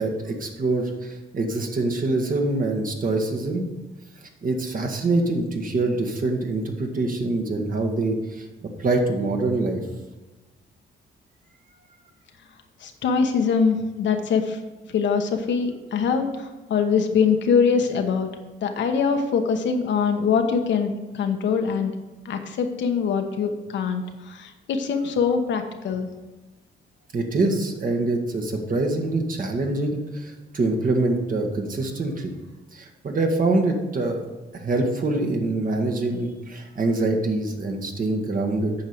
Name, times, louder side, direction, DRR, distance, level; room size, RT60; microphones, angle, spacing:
voice 1, 0.0-3.6 4.4-9.8 27.1-32.3 32.7-34.2 34.5-38.7, right 2 dB, 45° right, 3 dB, 1.6 m, -25 dB
voice 2, 12.8-14.6 14.9-18.3 18.6-21.9 22.2-26.1, left 6 dB, 65° left, 5 dB, 1.1 m, -23 dB
8.7 x 5.7 x 5.1 m, 1.1 s
cardioid pair, 90°, 20 cm